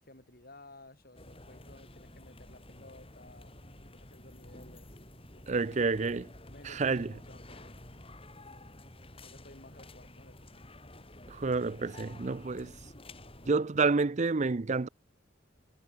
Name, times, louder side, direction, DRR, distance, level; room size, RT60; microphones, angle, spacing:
voice 1, 0.0-3.6 3.8-5.0 5.3-6.0 6.5-7.8 9.2-10.7, left 2 dB, 50° left, 7.2 m, -55 dB
sound 1, 1.1-13.5, left 1 dB, 30° left, 7.4 m, -51 dB
voice 2, 5.5-6.3 6.6-7.1 11.3-12.7 13.5-14.9, right 4 dB, 35° right, 0.5 m, -29 dB
head